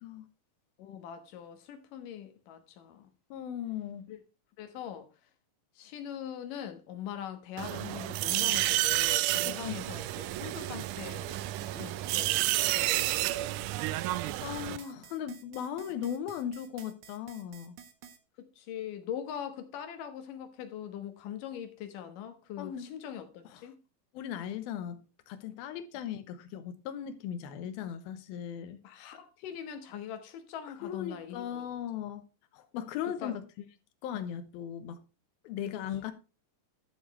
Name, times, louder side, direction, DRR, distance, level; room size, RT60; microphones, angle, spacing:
voice 1, 0.8-3.1 4.1-4.2 4.6-5.1 5.8-11.4 11.7-13.1 14.7-14.8 18.4-23.8 28.8-31.7 33.2-33.3 34.1-34.3, left 9 dB, 70° left, 2.7 m, -42 dB
voice 2, 3.3-4.1 9.5-9.8 14.4-17.8 22.6-22.9 23.5-23.6 24.1-28.8 30.8-32.2 32.5-33.4 34.0-35.0 35.4-36.1, left 9 dB, 90° left, 2.8 m, -38 dB
sound 1, 7.6-14.8, right 16 dB, 90° right, 1.8 m, -30 dB
sound 2, 10.3-18.2, right 8 dB, 65° right, 1.4 m, -52 dB
11.5 x 7.3 x 3.1 m
omnidirectional pair, 4.2 m